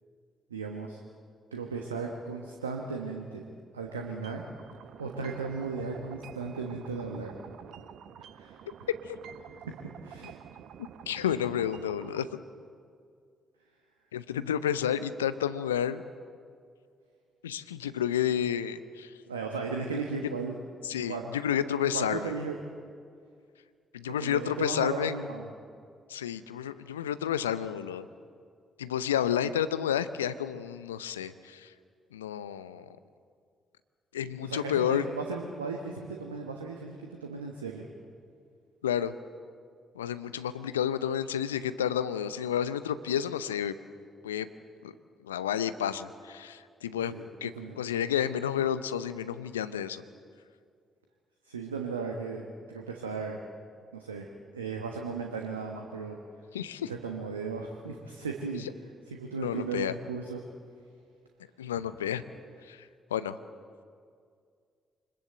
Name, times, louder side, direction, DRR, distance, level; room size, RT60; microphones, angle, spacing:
voice 1, 0.5-1.0 1.5-3.4 3.7-4.4 5.0-7.3 8.3-8.6 9.7-9.8 10.0-10.4 19.3-20.5 21.1-21.2 21.9-22.6 24.2-25.5 34.4-37.8 47.1-47.8 51.5-53.4 53.9-54.2 54.5-56.2 56.9-58.6 59.1-60.4, right 4 dB, 85° right, 2 dB, 1.2 m, -36 dB
sound 1, 4.2-12.2, right 9 dB, 65° right, 0.9 m, -48 dB
voice 2, 11.1-12.3 14.1-16.0 17.4-19.1 20.8-22.3 23.9-25.1 26.1-28.1 28.8-31.7 32.1-32.9 34.1-35.0 38.8-39.1 39.9-43.7 44.2-44.5 44.8-44.9 45.2-50.0 56.5-56.9 58.5-58.7 59.4-59.9 61.6-62.2 62.7-63.4, left 9 dB, 85° left, 13 dB, 0.6 m, -30 dB
25.0 x 21.0 x 8.0 m, 2.2 s
figure-of-eight pair, 40°, 0 cm